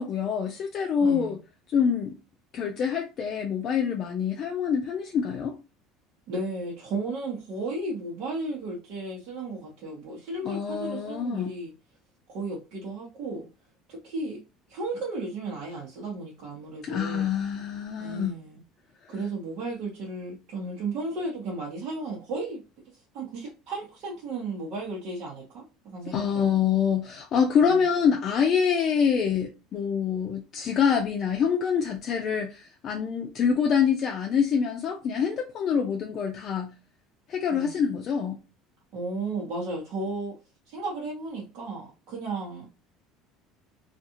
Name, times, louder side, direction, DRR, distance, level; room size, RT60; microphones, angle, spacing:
voice 1, 0.0-1.4 1.7-2.1 2.5-5.6 10.4-11.5 16.8-18.4 26.1-36.7 37.3-38.4, left 7 dB, 45° left, 0.5 m, -26 dB
voice 2, 1.0-1.4 6.3-11.7 12.3-13.5 13.9-14.4 14.7-17.3 18.0-18.6 19.1-22.6 23.1-26.5 27.6-27.8 37.5-37.8 38.9-40.3 40.7-42.7, right 2 dB, 65° right, 1.0 m, -34 dB
2.5 x 2.3 x 2.8 m
supercardioid pair, 100°, 0 cm